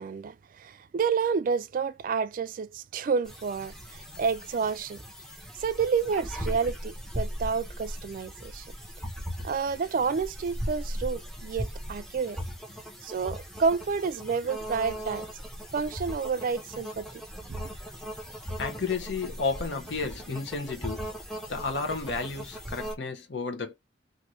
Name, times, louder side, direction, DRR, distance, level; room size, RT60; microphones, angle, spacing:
voice 1, 0.0-5.0 5.6-8.7 9.4-12.4 13.0-15.3 15.7-17.1 17.5-17.6, right 5 dB, 50° right, 0.3 m, -29 dB
sound 1, 3.3-23.0, equal, ahead, 0.6 m, -38 dB
voice 2, 18.6-21.1 21.5-23.7, left 4 dB, 75° left, 0.8 m, -32 dB
2.6 x 2.6 x 3.0 m
head